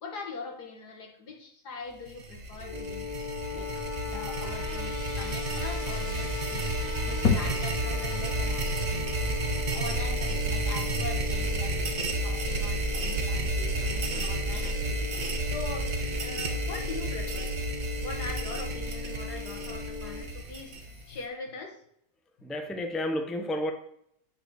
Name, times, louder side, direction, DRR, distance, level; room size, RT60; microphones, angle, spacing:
voice 1, 0.0-3.1 3.5-9.4 9.7-11.8 12.2-15.1 15.4-15.9 16.2-17.5 18.0-21.8, left 4 dB, 85° left, 2 dB, 2.1 m, -42 dB
sound 1, 2.1-21.1, right 2 dB, 40° right, 1.2 m, -31 dB
sound 2, 2.6-20.2, left 6 dB, 30° left, 1.9 m, -39 dB
sound 3, 7.3-21.3, left 5 dB, 65° left, 1.8 m, -39 dB
voice 2, 22.4-23.7, left 1 dB, ahead, 5 dB, 0.6 m, -31 dB
9.9 x 4.8 x 6.4 m, 0.72 s
omnidirectional pair, 1.7 m